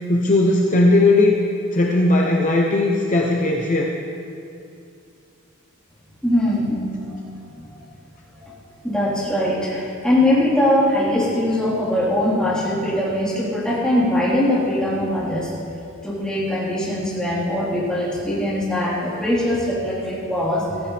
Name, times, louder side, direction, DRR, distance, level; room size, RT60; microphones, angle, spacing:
voice 1, 0.1-1.3 1.7-3.9, left 2 dB, 35° left, -1 dB, 0.8 m, -17 dB
voice 2, 6.2-6.8 7.1-7.2 8.4-8.6 8.8-15.5 16.0-20.8, left 1 dB, 5° left, -10 dB, 4.1 m, -21 dB
16.0 x 15.0 x 3.4 m, 2.5 s
head